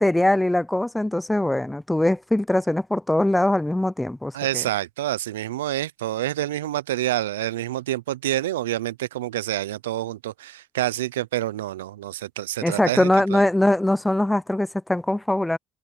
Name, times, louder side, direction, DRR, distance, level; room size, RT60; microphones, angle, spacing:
voice 1, 0.0-4.6 12.6-15.6, left 1 dB, 10° left, 0.5 m, -22 dB
voice 2, 4.3-13.4, right 14 dB, 90° right, 0.4 m, -27 dB
hypercardioid pair, 60°, 0 cm